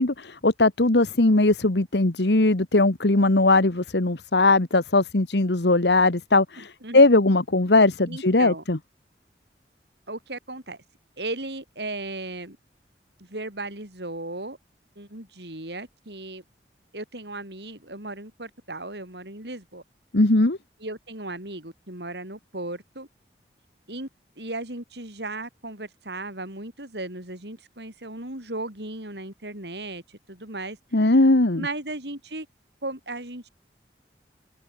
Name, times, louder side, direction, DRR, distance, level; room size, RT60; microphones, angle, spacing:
voice 1, 0.0-8.8 20.1-20.6 30.9-31.6, left 2 dB, 75° left, 1.6 m, -19 dB
voice 2, 6.6-7.0 8.1-8.6 10.1-10.8 11.2-12.6 13.2-14.6 15.0-16.4 16.9-19.8 20.8-23.1 23.9-24.1 24.4-30.8 31.0-31.2 31.6-32.5 32.8-33.5, right 2 dB, 75° right, 7.8 m, -36 dB
head